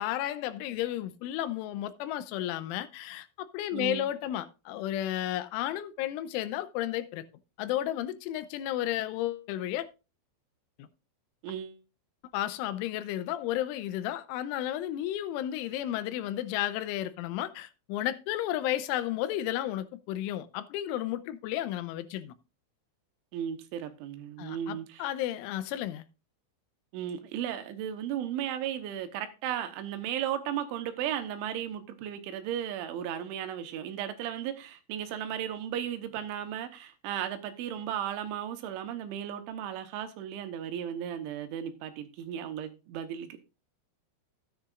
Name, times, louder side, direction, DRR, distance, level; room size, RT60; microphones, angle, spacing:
voice 1, 0.0-7.2 7.6-9.9 10.8-10.9 12.3-22.3 24.4-26.0, left 13 dB, 85° left, 3.2 m, -33 dB
voice 2, 3.7-4.1 11.4-11.8 23.3-25.1 26.9-43.4, right 10 dB, 80° right, 3.4 m, -35 dB
12.5 x 9.9 x 2.5 m
omnidirectional pair, 5.6 m